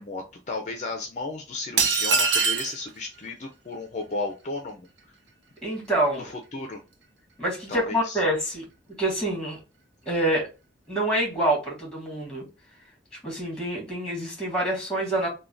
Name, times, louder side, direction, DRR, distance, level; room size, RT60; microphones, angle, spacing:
voice 1, 0.0-4.9 6.2-6.8 7.7-8.2, left 3 dB, 40° left, 0.5 m, -34 dB
sound 1, 1.8-2.8, right 5 dB, 80° right, 0.6 m, -22 dB
voice 2, 5.6-6.3 7.4-8.6 9.0-9.6 10.0-10.5 10.9-12.4 13.2-15.3, right 1 dB, 5° left, 1.6 m, -26 dB
3.5 x 2.2 x 2.5 m
head